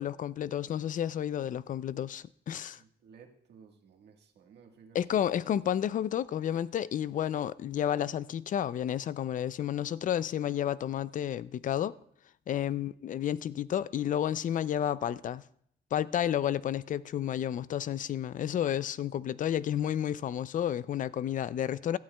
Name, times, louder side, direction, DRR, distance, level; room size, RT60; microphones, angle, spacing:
voice 1, 0.0-2.8 4.9-11.9 12.5-15.4 15.9-22.0, left 10 dB, 50° left, 0.4 m, -31 dB
voice 2, 2.7-5.0 12.7-12.9, right 6 dB, 70° right, 1.5 m, -56 dB
17.0 x 12.5 x 2.3 m
cardioid pair, 115°, 18 cm